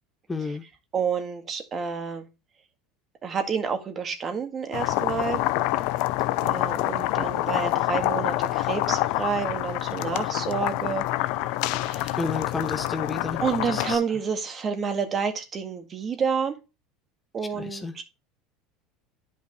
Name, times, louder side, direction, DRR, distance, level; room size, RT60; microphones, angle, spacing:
voice 1, 0.3-0.6 12.2-13.4 13.7-14.0 17.6-17.9, left 4 dB, 15° left, 1.0 m, -31 dB
voice 2, 0.9-2.3 3.2-5.4 6.4-11.0 11.7-12.2 13.4-16.6 17.3-18.0, right 6 dB, 35° right, 1.9 m, -29 dB
sound 1, 4.7-14.0, left 17 dB, 65° left, 0.5 m, -27 dB
10.5 x 5.4 x 3.1 m
hypercardioid pair, 90°, 0 cm